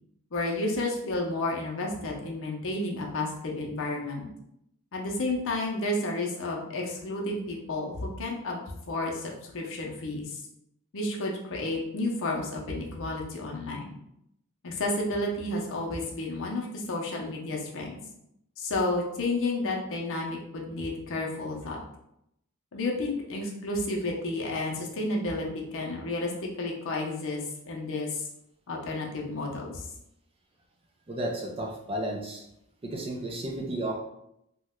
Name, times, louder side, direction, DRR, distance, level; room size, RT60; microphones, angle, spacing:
voice 1, 0.3-4.3 4.9-8.6 8.9-10.4 10.9-13.9 14.6-18.0 18.6-21.8 22.7-28.3 28.7-29.9, left 2 dB, 60° left, 0 dB, 0.6 m, -31 dB
voice 2, 31.1-32.4 32.8-33.9, right 1 dB, 25° right, 1 dB, 0.4 m, -33 dB
2.9 x 2.1 x 3.5 m, 0.79 s
head